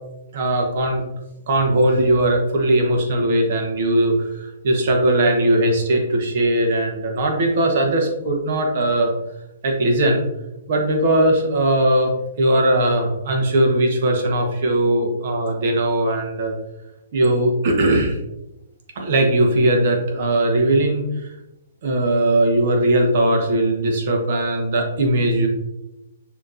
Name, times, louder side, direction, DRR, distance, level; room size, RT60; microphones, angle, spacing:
voice 1, 0.3-1.0 1.5-9.1 9.6-10.3 10.7-16.5 17.1-18.2 18.9-21.3 21.8-25.5, right 1 dB, 55° right, 2 dB, 1.1 m, -19 dB
6.3 x 2.9 x 2.6 m, 0.92 s
hypercardioid pair, 130°, 0 cm